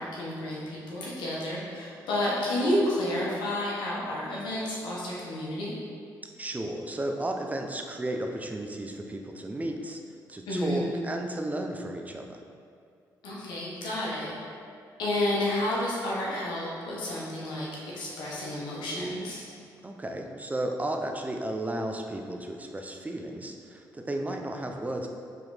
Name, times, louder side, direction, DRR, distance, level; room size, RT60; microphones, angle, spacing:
voice 1, 0.0-5.7 10.5-10.8 13.2-14.3 15.0-19.4, left 1 dB, 90° left, -6 dB, 1.4 m, -30 dB
voice 2, 6.4-10.0 10.3-12.4 19.8-25.1, right 1 dB, 20° right, 3 dB, 0.6 m, -33 dB
4.9 x 3.8 x 4.9 m, 2.3 s
cardioid pair, 70°, 8 cm